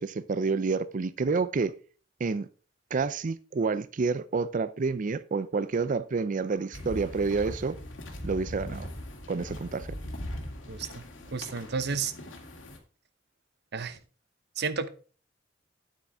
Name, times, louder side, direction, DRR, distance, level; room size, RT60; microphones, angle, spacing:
voice 1, 0.0-1.7 2.2-2.5 2.9-7.8 8.2-8.9 9.3-9.9, right 4 dB, 45° right, 0.4 m, -29 dB
sound 1, 6.7-12.8, left 1 dB, 85° left, 2.1 m, -40 dB
voice 2, 10.7-12.1 13.7-14.0 14.6-14.9, right 5 dB, 60° right, 0.8 m, -32 dB
9.1 x 8.4 x 3.5 m
head